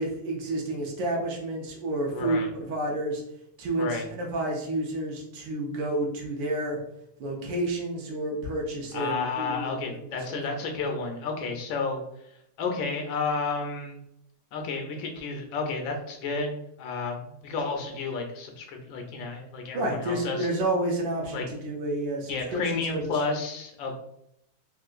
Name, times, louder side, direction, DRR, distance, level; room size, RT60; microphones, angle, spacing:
voice 1, 0.0-3.2 3.6-6.8 7.2-9.7 10.3-10.4 19.7-23.1, right 1 dB, 70° right, 0 dB, 1.2 m, -30 dB
voice 2, 2.1-2.5 3.8-4.1 8.9-12.3 12.6-14.0 14.5-20.5 21.3-21.4 22.3-23.9, left 4 dB, 75° left, 3 dB, 1.2 m, -31 dB
3.5 x 2.4 x 2.4 m, 0.78 s
omnidirectional pair, 2.3 m